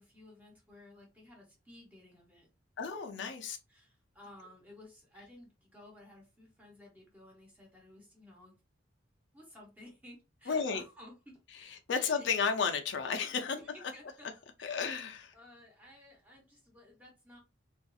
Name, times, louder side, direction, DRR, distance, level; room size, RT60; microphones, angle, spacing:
voice 1, 0.0-2.5 3.1-8.5 9.3-12.4 13.5-14.3 14.6-15.0 15.3-17.4, left 1 dB, 10° right, 0.9 m, -55 dB
voice 2, 2.8-3.6 10.5-10.8 11.6-13.6 14.6-15.3, left 5 dB, 70° left, 0.4 m, -33 dB
2.6 x 2.4 x 2.3 m
head